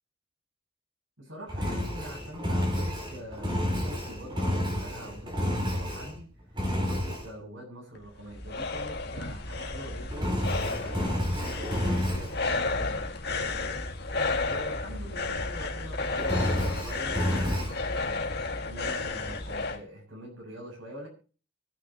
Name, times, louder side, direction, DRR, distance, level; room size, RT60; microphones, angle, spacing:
voice 1, 1.2-13.8 14.5-21.1, right 1 dB, 80° right, -1 dB, 7.1 m, -44 dB
Engine, 1.5-6.2 6.5-7.3 10.1-12.4 16.2-17.7, left 1 dB, 25° right, 4.6 m, -30 dB
sound 1, 7.9-19.8, left 3 dB, 55° left, 2.0 m, -32 dB
24.5 x 9.4 x 3.0 m, 0.36 s
head